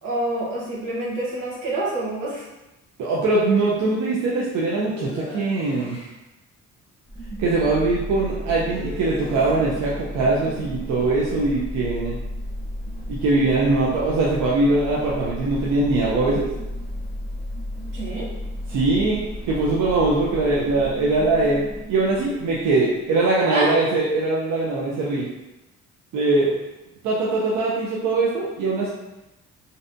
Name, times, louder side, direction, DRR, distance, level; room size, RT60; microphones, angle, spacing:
voice 1, 0.0-2.4 17.9-18.3 23.5-23.7, right 2 dB, 90° right, -6 dB, 0.9 m, -27 dB
voice 2, 3.0-6.0 7.4-12.2 13.1-16.5 18.7-19.2 19.5-21.6 21.9-25.3 26.1-26.6 27.0-28.9, right 2 dB, 70° right, -5 dB, 0.5 m, -21 dB
sound 1, 4.8-6.1 8.7-9.9, left 2 dB, 20° left, 0.6 m, -37 dB
sound 2, 7.1-23.0, equal, 10° right, 0.8 m, -33 dB
2.6 x 2.1 x 2.5 m, 0.99 s
cardioid pair, 90°, 30 cm